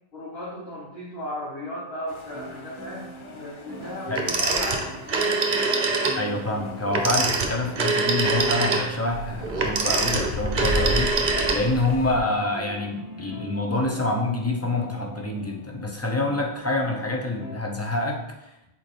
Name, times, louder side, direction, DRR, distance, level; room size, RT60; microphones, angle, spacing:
voice 1, 0.1-5.4, left 1 dB, 70° left, -7 dB, 1.6 m, -35 dB
sound 1, 2.1-12.2, left 1 dB, 40° left, 0.4 m, -36 dB
sound 2, 2.3-17.5, right 2 dB, 20° right, 0.9 m, -42 dB
Telephone, 4.1-6.2 6.9-11.9, right 3 dB, 55° right, 0.9 m, -24 dB
voice 2, 6.1-11.1 11.5-18.5, left 2 dB, 15° left, 0 dB, 0.7 m, -27 dB
6.4 x 4.4 x 3.4 m, 0.93 s
omnidirectional pair, 1.0 m